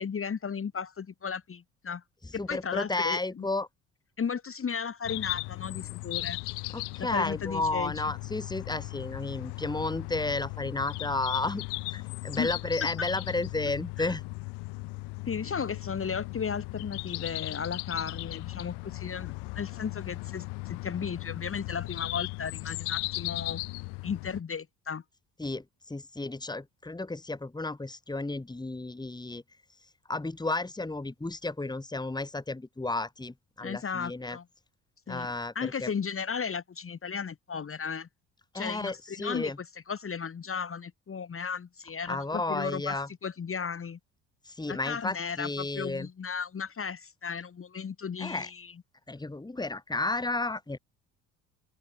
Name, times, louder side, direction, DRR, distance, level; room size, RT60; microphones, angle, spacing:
voice 1, 0.0-2.0 2.5-3.5 4.2-6.4 7.0-8.1 12.4-12.5 14.0-14.1 15.3-23.6 24.0-25.0 33.6-34.5 35.1-35.3 35.6-38.1 38.5-39.5 39.9-44.0 44.7-48.7, left 6 dB, 30° left, 1.8 m, -35 dB
voice 2, 2.4-3.7 6.7-11.6 11.9-14.2 25.4-29.4 30.1-34.4 35.1-35.9 38.5-39.6 42.1-43.1 44.5-46.1 48.2-48.5 49.1-50.8, left 2 dB, 10° left, 2.0 m, -32 dB
sound 1, 5.0-24.4, left 27 dB, 70° left, 1.5 m, -37 dB
open air
hypercardioid pair, 55°, 42 cm